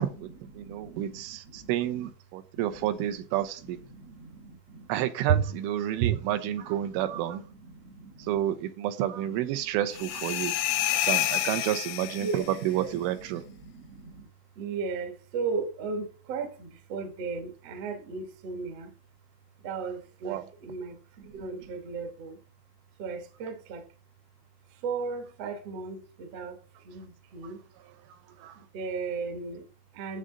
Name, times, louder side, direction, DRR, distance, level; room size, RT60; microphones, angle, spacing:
voice 1, 0.0-2.1 2.5-3.2 3.6-4.9 5.3-5.4 5.9-8.5 9.2-11.6 12.0-14.3 14.5-18.9 19.6-22.4 23.0-23.9 24.7-27.6 28.5-30.2, right 5 dB, 60° right, 1.6 m, -37 dB
voice 2, 0.6-3.8 4.9-7.4 8.3-10.6 11.1-13.4 20.3-20.5 28.4-28.6, right 12 dB, 85° right, 3.4 m, -30 dB
sound 1, 9.9-12.7, left 13 dB, 75° left, 2.5 m, -29 dB
10.5 x 7.7 x 3.9 m
omnidirectional pair, 5.5 m